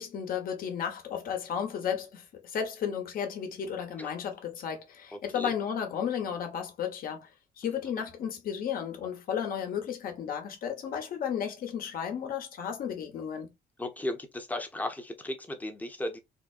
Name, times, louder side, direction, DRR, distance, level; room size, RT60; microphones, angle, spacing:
voice 1, 0.0-13.5, left 8 dB, 60° left, 1.2 m, -34 dB
voice 2, 13.8-16.2, left 1 dB, 10° left, 0.8 m, -35 dB
3.6 x 2.2 x 2.5 m
cardioid pair, 110°, 17 cm